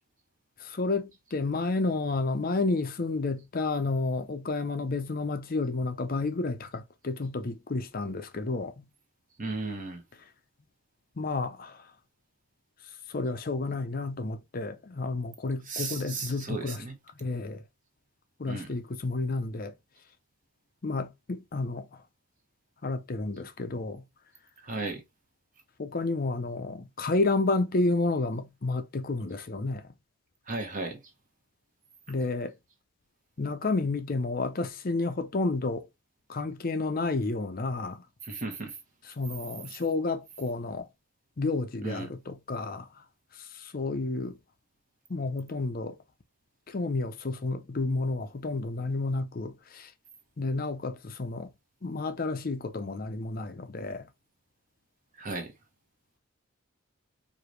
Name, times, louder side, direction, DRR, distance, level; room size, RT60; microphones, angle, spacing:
voice 1, 0.6-8.9 11.2-11.9 13.1-16.8 17.2-17.6 18.4-19.7 20.8-22.0 22.8-24.0 25.8-29.9 32.1-32.5 33.4-35.8 36.3-38.0 39.2-40.9 41.4-43.0 43.3-44.4 45.1-46.0 46.7-49.9 50.4-51.5 51.8-54.1, left 3 dB, 40° left, 0.6 m, -31 dB
voice 2, 9.4-10.0 15.6-17.0 18.5-18.7 24.6-25.0 30.5-31.0 38.2-38.8 41.8-42.1 55.2-55.5, right 3 dB, 40° right, 1.2 m, -35 dB
4.8 x 2.7 x 3.1 m
head